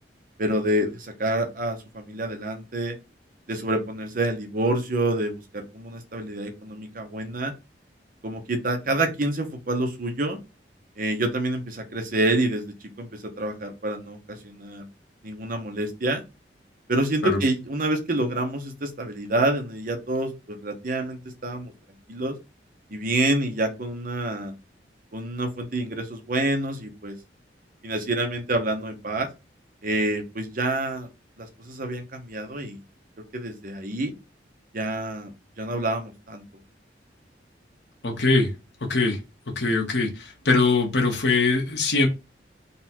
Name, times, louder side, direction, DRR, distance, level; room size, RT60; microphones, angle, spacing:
voice 1, 0.4-3.0 3.5-7.5 8.2-10.4 11.0-12.6 13.0-14.2 14.4-14.9 15.2-16.2 16.9-21.7 22.1-22.4 22.9-24.5 25.1-27.2 27.8-29.3 29.8-31.1 31.4-32.8 33.3-34.1 34.7-35.3 35.6-36.4, right 1 dB, 50° right, 0.9 m, -27 dB
voice 2, 38.0-38.5 38.9-39.2 39.5-42.1, left 3 dB, 75° left, 1.2 m, -22 dB
4.0 x 2.3 x 4.3 m
head